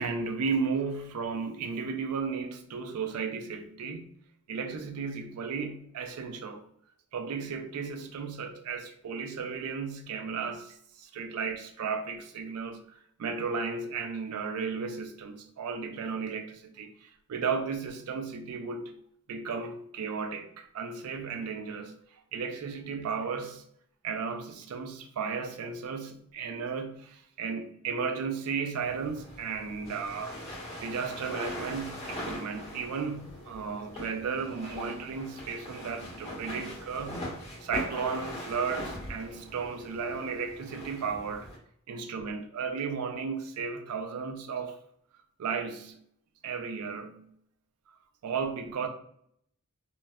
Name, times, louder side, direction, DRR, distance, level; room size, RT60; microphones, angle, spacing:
voice 1, 0.0-4.1 4.5-6.7 7.1-19.0 19.3-22.0 22.3-23.6 24.0-30.4 30.8-37.3 37.6-41.5 41.9-44.8 45.4-46.0 46.4-47.3 48.2-48.9, right 5 dB, 80° right, 0.4 m, -34 dB
sound 1, 28.8-41.5, left 1 dB, 25° left, 0.9 m, -41 dB
2.9 x 2.1 x 2.2 m
head